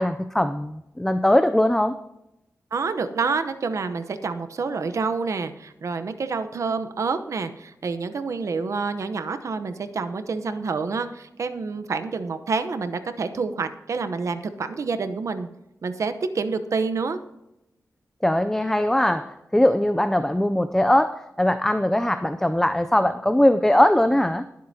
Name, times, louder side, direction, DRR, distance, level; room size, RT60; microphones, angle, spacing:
voice 1, 0.0-2.0 18.2-24.5, left 1 dB, 5° left, 10 dB, 0.4 m, -21 dB
voice 2, 2.7-15.5 15.8-17.2, right 4 dB, 65° right, 9 dB, 0.8 m, -28 dB
20.5 x 7.6 x 2.8 m, 0.91 s
wide cardioid pair, 130°, 6 cm